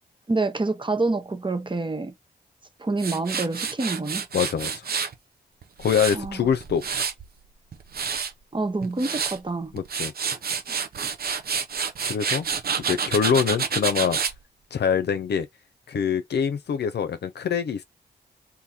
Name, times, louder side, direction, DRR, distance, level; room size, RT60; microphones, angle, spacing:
voice 1, 0.3-2.1 2.8-4.2 6.1-6.4 8.5-9.7 10.3-10.4, right 3 dB, 30° right, 0.9 m, -27 dB
Tools, 3.0-5.1 5.6-7.3 7.7-8.3 8.8-9.4 9.8-14.4, right 6 dB, 60° right, 0.7 m, -28 dB
voice 2, 4.3-4.9 5.8-6.9 9.7-10.1 12.0-12.5 12.9-14.2 14.7-15.5 15.9-17.8, left 7 dB, 75° left, 0.6 m, -24 dB
2.7 x 2.7 x 3.6 m
cardioid pair, 50°, 17 cm